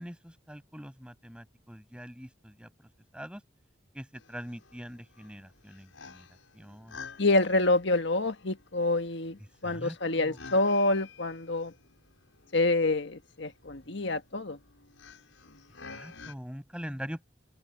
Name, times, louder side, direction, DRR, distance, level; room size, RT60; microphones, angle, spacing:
voice 1, 0.0-2.7 3.1-3.4 3.9-6.3 6.5-7.0 9.6-10.4 15.9-17.2, equal, 5° right, 7.7 m, -43 dB
sound 1, 4.1-16.3, left 5 dB, 85° left, 6.3 m, -51 dB
voice 2, 7.2-11.7 12.5-14.6, left 2 dB, 65° left, 1.6 m, -27 dB
open air
head